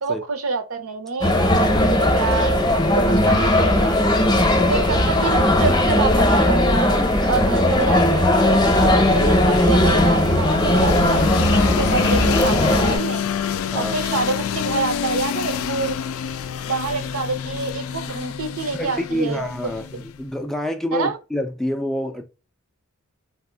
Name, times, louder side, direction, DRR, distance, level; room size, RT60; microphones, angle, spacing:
voice 1, 0.0-4.0 4.7-8.3 8.7-13.2 13.7-16.0 16.6-19.5 20.9-21.2, right 4 dB, 80° right, 0.7 m, -27 dB
sound 1, 1.2-13.0, left 1 dB, 20° left, 0.7 m, -18 dB
voice 2, 4.4-4.9 7.3-7.5 8.8-9.0 11.7-11.8 13.7-14.0 18.7-22.2, equal, ahead, 0.3 m, -27 dB
sound 2, 8.5-20.3, left 8 dB, 80° left, 0.3 m, -28 dB
3.5 x 2.4 x 2.2 m
head